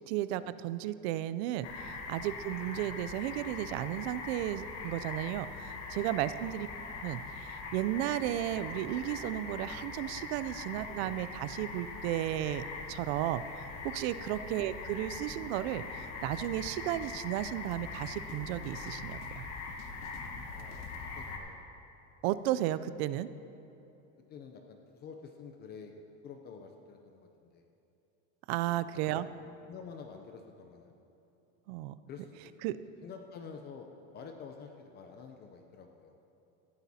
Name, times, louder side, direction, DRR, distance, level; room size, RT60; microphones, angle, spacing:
voice 1, 0.1-6.7 7.0-19.5 22.2-23.3 28.5-29.3 31.7-31.9 32.6-32.8, right 13 dB, 65° right, 14 dB, 0.5 m, -34 dB
sound 1, 1.6-21.4, left 4 dB, 45° left, 1.3 m, -42 dB
sound 2, 16.2-21.1, left 7 dB, 75° left, 0.8 m, -51 dB
voice 2, 20.5-21.6 24.3-27.6 28.7-29.3 29.7-30.9 32.1-32.7 33.0-36.1, left 5 dB, 30° left, 4 dB, 0.5 m, -49 dB
14.5 x 12.0 x 2.8 m, 2.9 s
supercardioid pair, 150°, 36 cm